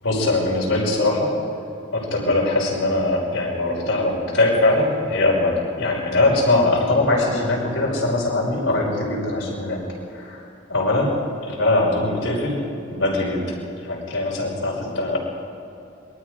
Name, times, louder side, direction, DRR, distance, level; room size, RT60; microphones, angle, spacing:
voice 1, 0.0-1.4 1.9-9.9 10.1-12.6 12.9-13.6 13.8-15.2, left 2 dB, 80° left, -4 dB, 5.7 m, -21 dB
27.0 x 21.5 x 5.1 m, 2.8 s
head